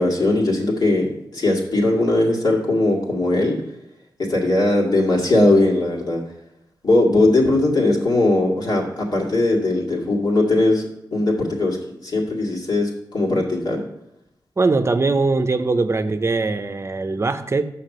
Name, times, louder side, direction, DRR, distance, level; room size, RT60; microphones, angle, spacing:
voice 1, 0.0-3.6 4.3-6.2 6.8-10.9 11.1-11.8 12.0-13.8, left 2 dB, 60° left, -2 dB, 2.2 m, -19 dB
voice 2, 14.6-17.6, right 3 dB, 35° right, 9 dB, 0.7 m, -21 dB
5.9 x 5.8 x 6.6 m, 0.80 s
cardioid pair, 70°, 8 cm